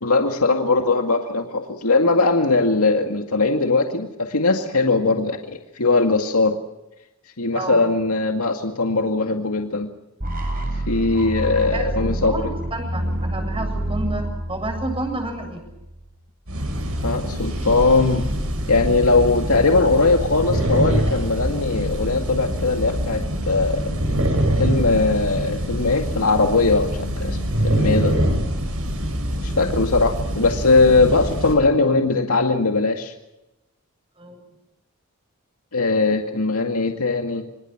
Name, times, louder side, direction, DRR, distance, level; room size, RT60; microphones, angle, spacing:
voice 1, 0.0-6.6 7.4-9.9 10.9-12.4 17.0-18.3 18.7-23.9 24.6-27.4 27.6-28.2 29.4-33.1 35.7-37.5, left 3 dB, 80° left, 3 dB, 2.2 m, -20 dB
voice 2, 7.5-7.9 11.6-15.6 34.2-34.4, right 2 dB, 25° right, 5 dB, 7.8 m, -30 dB
sound 1, 10.2-16.1, right 1 dB, 40° right, 7.2 m, -27 dB
sound 2, 16.5-31.5, equal, 70° right, 6.4 m, -24 dB
26.5 x 26.5 x 6.1 m, 0.91 s
head